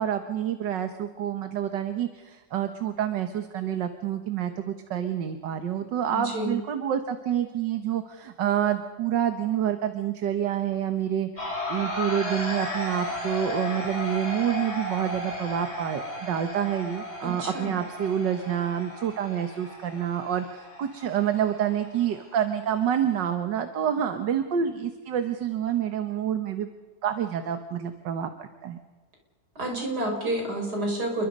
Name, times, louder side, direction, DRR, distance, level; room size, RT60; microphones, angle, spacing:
voice 1, 0.0-11.3 11.7-26.7 27.0-28.8, right 9 dB, 75° right, 8 dB, 1.9 m, -28 dB
voice 2, 6.1-6.6 17.2-17.7 29.6-31.3, right 1 dB, 60° right, 2 dB, 6.0 m, -29 dB
sound 1, 11.4-23.3, left 1 dB, 40° left, 5.2 m, -35 dB
28.5 x 23.0 x 5.4 m, 1.3 s
omnidirectional pair, 2.0 m